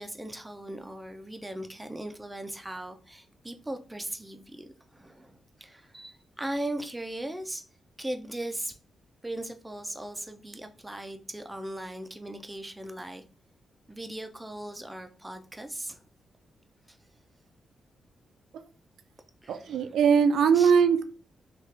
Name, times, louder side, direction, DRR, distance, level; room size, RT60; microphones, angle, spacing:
voice 1, 0.0-7.7 8.0-8.8 9.2-13.2 13.9-16.0 16.9-17.0 19.4-20.0 20.5-20.7, right 1 dB, 10° right, 0.5 m, -38 dB
voice 2, 19.5-21.0, right 6 dB, 85° right, 0.3 m, -21 dB
3.1 x 2.4 x 3.2 m
cardioid pair, 75°, 0 cm